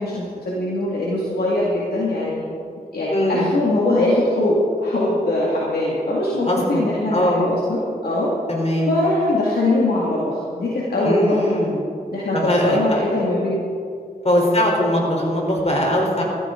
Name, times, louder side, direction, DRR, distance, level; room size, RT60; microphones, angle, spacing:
voice 1, 0.0-2.4 2.9-8.3 8.9-11.2 12.1-13.6 14.4-14.6, left 1 dB, 85° left, -6 dB, 2.2 m, -21 dB
voice 2, 3.1-3.5 6.4-6.8 7.1-7.4 8.5-8.9 11.0-11.8 12.3-13.0 14.2-16.2, left 1 dB, 45° left, -1 dB, 3.8 m, -20 dB
14.5 x 14.5 x 3.8 m, 2.4 s
cardioid pair, 50°, 16 cm